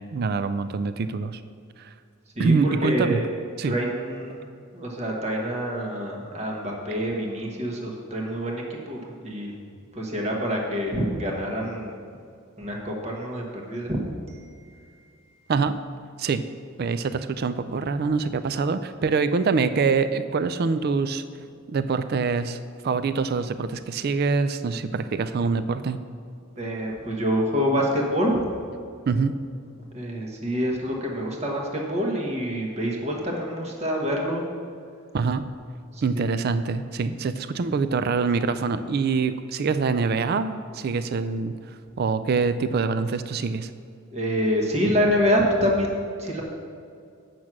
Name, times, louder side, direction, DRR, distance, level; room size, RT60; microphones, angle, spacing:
voice 1, 0.1-1.4 1.8-1.9 2.4-3.2 3.6-3.7 15.5-15.8 16.2-16.5 16.8-21.2 21.7-26.0 29.1-29.4 35.1-35.4 36.0-43.7, right 4 dB, 45° right, 12 dB, 0.4 m, -25 dB
voice 2, 2.3-3.3 3.6-4.5 4.7-9.5 9.9-11.9 12.6-14.0 14.3-14.4 14.7-14.8 26.6-28.4 29.9-34.5 35.9-36.4 44.1-46.4, equal, 30° right, -1 dB, 1.2 m, -26 dB
8.3 x 6.1 x 6.0 m, 2.4 s
head